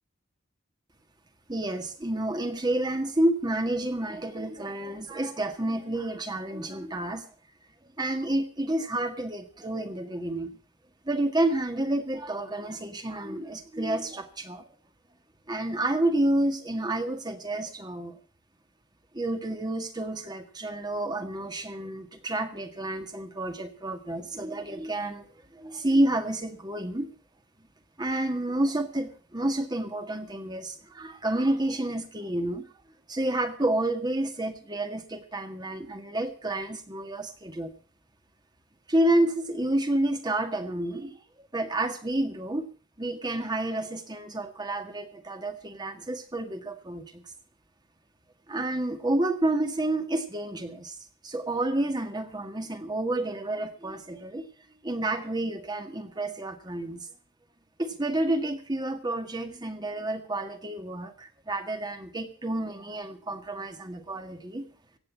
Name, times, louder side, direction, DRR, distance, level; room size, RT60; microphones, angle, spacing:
voice 1, 1.5-7.3 8.0-10.5 11.1-14.6 15.5-18.2 19.1-25.3 25.5-27.1 28.0-32.7 33.1-37.7 38.9-42.7 43.0-47.2 48.5-51.0 51.2-54.5 54.8-57.1 57.8-64.6, right 1 dB, 20° right, 7 dB, 1.7 m, -29 dB
16.0 x 8.9 x 7.2 m, 0.40 s
head